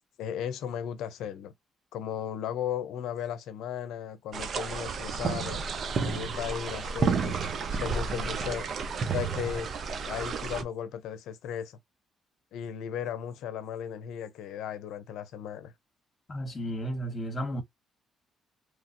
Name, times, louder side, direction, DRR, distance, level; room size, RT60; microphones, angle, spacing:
voice 1, 0.2-1.5 1.9-5.6 6.0-8.7 9.1-9.7 10.1-11.8 12.5-15.7, left 9 dB, 80° left, 0.6 m, -36 dB
sound 1, 4.3-10.6, right 5 dB, 55° right, 0.6 m, -31 dB
voice 2, 16.3-17.6, equal, 30° left, 1.3 m, -33 dB
3.1 x 2.5 x 2.6 m
supercardioid pair, 70°, 0 cm